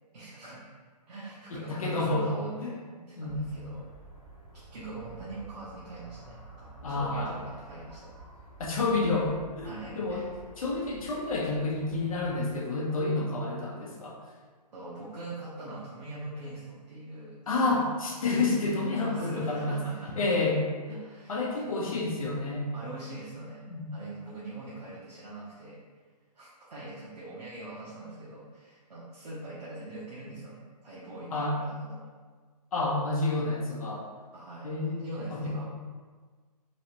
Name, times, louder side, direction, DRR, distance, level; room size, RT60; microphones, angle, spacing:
voice 1, 0.1-0.7 1.1-3.8 4.7-8.2 9.6-10.3 14.7-17.4 18.9-20.1 20.9-21.5 22.7-25.8 26.3-32.1 34.3-35.7, right 2 dB, 70° right, -9 dB, 0.9 m, -42 dB
voice 2, 1.5-2.3 2.6-2.7 3.2-3.4 6.8-7.4 8.6-9.7 10.0-10.2 10.6-14.2 17.5-19.8 20.1-20.6 21.3-22.7 23.7-23.8 31.3-31.5 32.7-34.1 34.6-35.5, left 3 dB, 55° left, -2 dB, 0.7 m, -29 dB
sound 1, 3.2-12.5, right 3 dB, ahead, 0.7 m, -50 dB
3.1 x 2.7 x 2.9 m, 1.5 s
hypercardioid pair, 170°, 21 cm